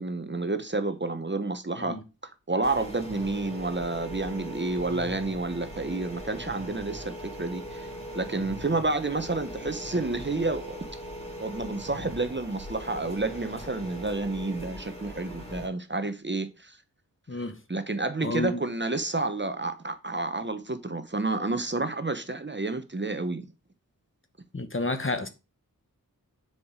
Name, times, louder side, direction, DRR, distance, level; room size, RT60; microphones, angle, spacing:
voice 1, 0.0-2.0 2.5-7.9 8.1-10.9 11.4-16.8 17.3-23.5, right 2 dB, 30° right, 0.9 m, -30 dB
sound 1, 2.6-15.7, equal, 15° left, 2.9 m, -40 dB
voice 2, 18.2-18.6 24.5-25.3, left 2 dB, 35° left, 1.2 m, -30 dB
6.9 x 4.9 x 4.8 m
wide cardioid pair, 55°, 35 cm